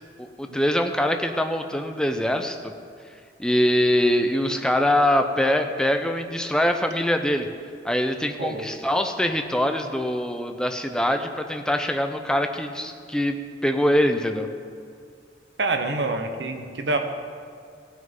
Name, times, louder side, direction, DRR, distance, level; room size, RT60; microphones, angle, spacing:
voice 1, 0.2-2.6 3.4-7.5 7.8-14.5, left 1 dB, 5° left, 5 dB, 0.6 m, -23 dB
voice 2, 15.6-17.0, right 3 dB, 85° right, 6 dB, 1.0 m, -26 dB
16.5 x 6.4 x 5.3 m, 2.2 s
head